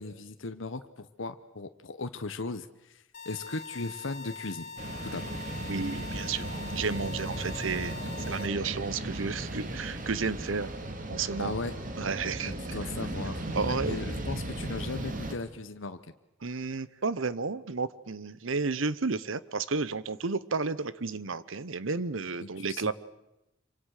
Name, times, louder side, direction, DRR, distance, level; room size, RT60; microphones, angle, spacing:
voice 1, 0.0-4.7 5.0-5.5 11.4-11.7 12.4-13.4 13.8-16.0 22.4-22.9, left 3 dB, 75° left, 9 dB, 1.0 m, -37 dB
sound 1, 3.1-8.5, left 4 dB, 40° left, 2.0 m, -43 dB
sound 2, 4.8-15.4, right 1 dB, 45° right, 2.5 m, -36 dB
voice 2, 5.7-8.0 8.3-10.7 11.1-11.5 12.0-12.8 13.5-14.0 16.4-22.9, right 4 dB, 85° right, 17 dB, 1.0 m, -32 dB
26.5 x 24.5 x 6.6 m, 0.90 s
head